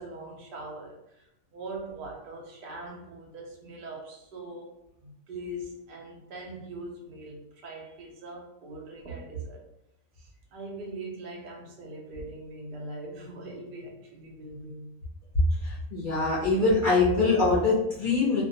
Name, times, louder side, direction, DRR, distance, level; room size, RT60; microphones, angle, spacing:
voice 1, 0.0-4.7 5.0-9.7 10.2-15.0, right 2 dB, 55° right, 0.6 m, -41 dB
voice 2, 15.6-18.4, left 3 dB, 55° left, 0.6 m, -23 dB
2.3 x 2.2 x 2.7 m
omnidirectional pair, 1.5 m